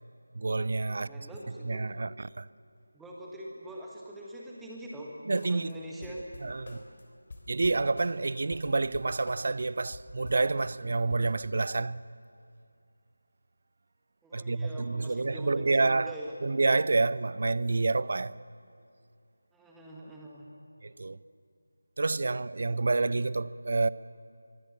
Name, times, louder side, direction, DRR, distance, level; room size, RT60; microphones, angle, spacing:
voice 1, 0.3-1.3 1.6-2.5 5.3-5.7 6.4-6.8 7.5-12.0 14.3-16.1 16.4-18.4 20.8-21.2 22.0-23.9, right 3 dB, 45° right, 0.6 m, -28 dB
voice 2, 0.9-1.8 2.9-6.2 14.2-16.3 19.5-20.5, right 1 dB, 5° right, 1.7 m, -44 dB
sound 1, 5.4-5.7 6.0-7.0 7.3-9.6 9.9-11.3, left 2 dB, 40° left, 3.6 m, -46 dB
24.5 x 24.0 x 7.3 m
figure-of-eight pair, 165°, 0 cm